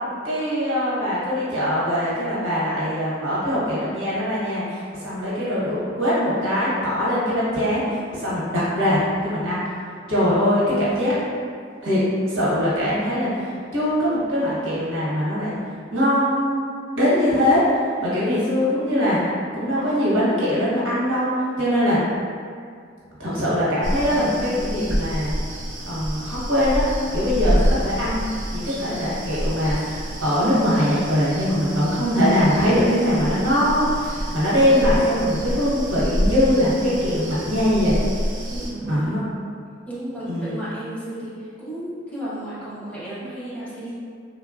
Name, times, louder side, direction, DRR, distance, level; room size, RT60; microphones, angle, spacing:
voice 1, 0.2-7.8 8.1-9.6 10.1-11.1 11.8-12.0 12.3-13.3 13.7-15.5 15.9-16.6 16.9-17.6 18.0-19.2 19.5-21.3 21.6-22.0 23.2-25.3 25.9-26.8 27.1-38.0 38.9-39.2 40.3-40.6, equal, 90° right, -8 dB, 1.0 m, -22 dB
sound 1, 23.8-38.7, equal, 70° right, 0.6 m, -28 dB
voice 2, 38.5-39.2 39.9-44.0, right 1 dB, 5° left, -11 dB, 0.7 m, -33 dB
3.2 x 2.2 x 2.3 m, 2.2 s
head